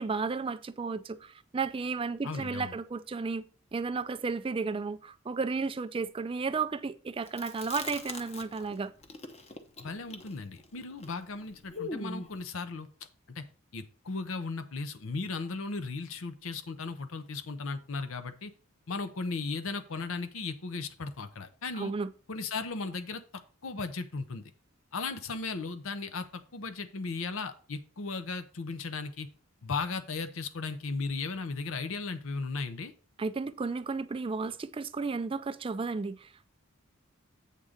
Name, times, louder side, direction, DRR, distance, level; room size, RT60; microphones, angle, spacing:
voice 1, 0.0-3.4 3.7-8.9 21.8-22.1 33.2-36.5, right 4 dB, 25° right, 0.3 m, -33 dB
voice 2, 2.2-2.7 9.8-12.9 13.3-13.5 13.7-18.5 18.9-21.9 22.3-23.2 23.6-24.5 24.9-29.3 29.6-32.9, left 4 dB, 75° left, 0.7 m, -36 dB
Chewing mastication, 7.3-8.7 9.0-12.4, left 3 dB, 30° left, 0.8 m, -41 dB
8.4 x 3.7 x 6.4 m
head